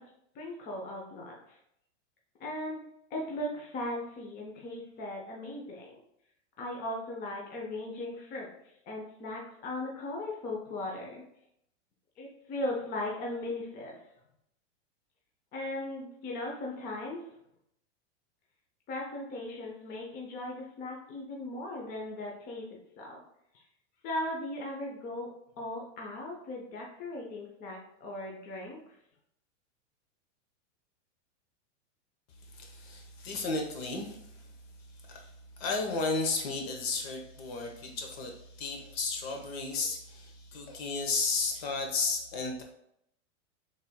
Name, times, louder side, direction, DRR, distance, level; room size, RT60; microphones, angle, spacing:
voice 1, 0.3-1.6 2.4-2.8 3.1-6.0 6.6-8.5 8.8-11.2 12.2-14.0 15.5-17.2 18.9-23.2 24.0-25.3 25.6-28.9, left 1 dB, 25° left, -1 dB, 0.6 m, -38 dB
voice 2, 32.5-34.5 35.0-35.3 35.6-42.6, left 3 dB, 55° left, 2 dB, 0.9 m, -33 dB
4.2 x 3.3 x 2.2 m, 0.76 s
supercardioid pair, 135°, 37 cm